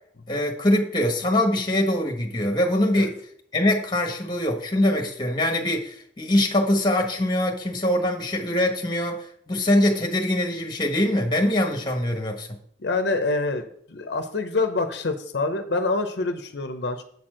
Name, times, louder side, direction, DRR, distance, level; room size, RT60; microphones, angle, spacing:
voice 1, 0.3-3.2 3.5-12.5, left 1 dB, 25° left, 3 dB, 1.2 m, -23 dB
voice 2, 12.8-17.0, left 3 dB, 70° left, 7 dB, 0.7 m, -26 dB
8.1 x 4.4 x 6.2 m, 0.63 s
head